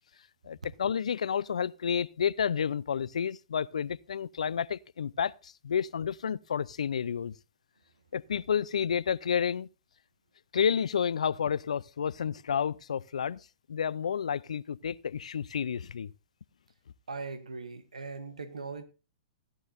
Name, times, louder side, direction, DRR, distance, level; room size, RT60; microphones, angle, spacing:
voice 1, 0.4-7.3 8.1-9.7 10.5-13.4 13.7-16.1, left 7 dB, 80° left, 0.5 m, -30 dB
voice 2, 17.1-18.8, right 4 dB, 90° right, 1.4 m, -39 dB
16.5 x 11.0 x 2.6 m
hypercardioid pair, 120°, 4 cm